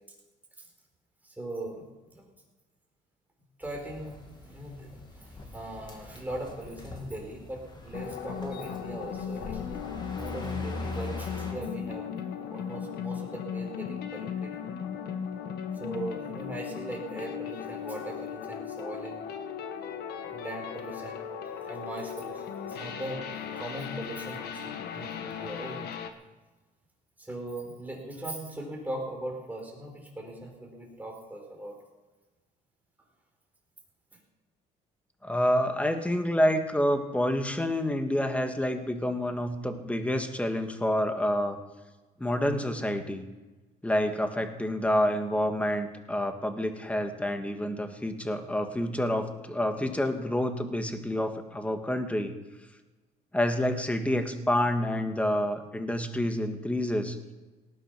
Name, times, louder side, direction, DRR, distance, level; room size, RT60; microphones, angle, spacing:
voice 1, 1.2-2.3 3.6-4.2 4.5-4.9 5.2-9.6 10.1-12.1 12.5-14.5 15.8-19.3 20.2-21.3 21.6-23.2 23.5-25.8 27.2-31.8, right 1 dB, 10° right, 0 dB, 5.2 m, -39 dB
sound 1, 3.6-11.5, left 2 dB, 25° left, 2.6 m, -42 dB
sound 2, 7.9-26.1, left 7 dB, 70° left, 1.5 m, -37 dB
voice 2, 35.2-41.6 42.2-43.2 43.8-52.4 53.3-57.2, left 1 dB, 10° left, 7 dB, 1.7 m, -28 dB
18.5 x 9.6 x 6.1 m, 1.2 s
cardioid pair, 110°, 17 cm